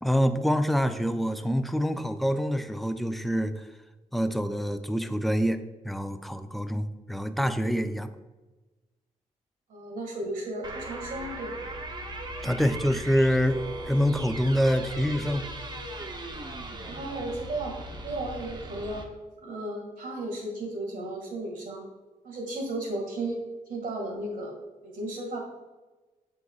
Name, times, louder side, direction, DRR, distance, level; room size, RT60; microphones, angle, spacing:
voice 1, 0.0-3.7 4.1-5.6 5.8-8.1 12.4-15.5, equal, ahead, 8 dB, 0.5 m, -26 dB
voice 2, 9.7-11.5 16.9-19.1 19.4-21.8 22.2-23.4 23.7-24.5 24.8-25.4, right 2 dB, 70° right, 0 dB, 2.0 m, -34 dB
sound 1, 10.6-19.0, right 1 dB, 30° right, 0.8 m, -38 dB
8.1 x 5.4 x 2.4 m, 1.2 s
cardioid pair, 80°, 14 cm